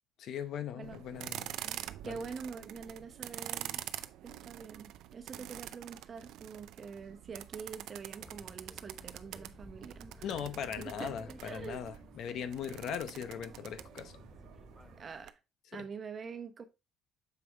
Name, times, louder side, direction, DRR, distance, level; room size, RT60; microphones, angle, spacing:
voice 1, 0.2-1.5 2.0-2.2 4.3-4.4 10.2-14.2 15.7-15.8, left 8 dB, 60° left, 0.8 m, -39 dB
sound 1, 0.8-15.3, right 13 dB, 75° right, 0.5 m, -46 dB
voice 2, 2.0-3.8 4.2-10.3 10.8-11.1 11.4-12.0 15.0-15.4 15.7-16.6, right 5 dB, 35° right, 1.0 m, -45 dB
sound 2, 8.2-15.0, equal, ahead, 0.6 m, -54 dB
6.9 x 4.9 x 3.4 m
cardioid pair, 130°, 0 cm